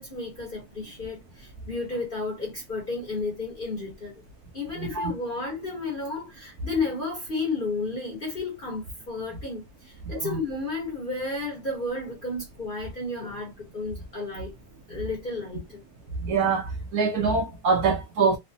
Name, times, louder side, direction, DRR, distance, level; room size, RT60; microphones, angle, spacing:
voice 1, 0.0-4.2 4.5-14.5 14.9-15.8, left 3 dB, 40° left, 0.8 m, -32 dB
voice 2, 4.8-5.1 10.1-10.4 16.2-18.4, right 5 dB, 70° right, 1.0 m, -24 dB
3.1 x 2.0 x 2.5 m
omnidirectional pair, 1.9 m